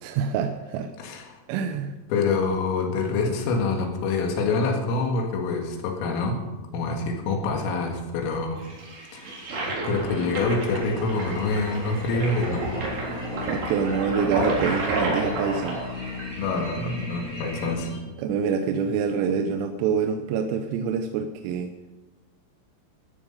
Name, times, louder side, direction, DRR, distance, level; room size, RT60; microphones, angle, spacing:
voice 1, 0.0-0.9 1.5-1.9 13.5-15.8 18.2-21.7, right 6 dB, 85° right, 6 dB, 3.3 m, -26 dB
voice 2, 1.0-1.4 2.1-6.4 6.7-8.6 9.1-9.4 9.8-12.6 16.4-17.9, left 3 dB, 90° left, 2 dB, 4.6 m, -26 dB
Toilet flush, 8.6-17.7, right 2 dB, 60° right, 5.6 m, -31 dB
sound 1, 9.9-18.0, left 4 dB, 60° left, 4.1 m, -37 dB
14.0 x 13.5 x 5.3 m, 1.2 s
omnidirectional pair, 5.7 m